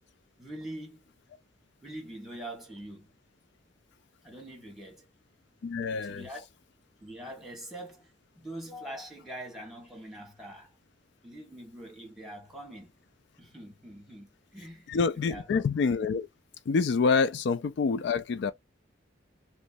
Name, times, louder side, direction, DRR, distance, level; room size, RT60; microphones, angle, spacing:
voice 1, 0.4-1.0 1.8-3.1 4.2-5.0 5.9-6.4 7.0-10.7 11.2-12.9 13.4-15.6, right 1 dB, ahead, 1.5 m, -44 dB
voice 2, 5.6-6.2 14.9-16.3 16.7-18.5, left 5 dB, 65° left, 0.3 m, -27 dB
3.1 x 3.1 x 2.5 m
head